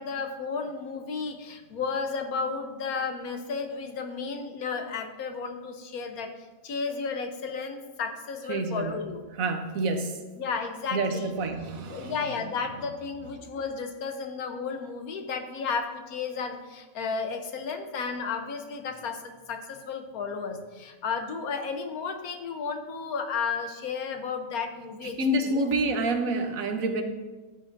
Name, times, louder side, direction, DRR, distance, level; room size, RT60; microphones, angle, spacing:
voice 1, 0.0-6.3 6.6-9.2 10.4-11.3 11.8-25.2 25.4-25.6, left 5 dB, 80° left, 5 dB, 1.4 m, -33 dB
voice 2, 8.5-9.0 9.4-10.2 10.9-12.3 25.0-27.0, right 2 dB, 70° right, 6 dB, 1.3 m, -28 dB
12.5 x 8.4 x 2.6 m, 1.2 s
omnidirectional pair, 1.5 m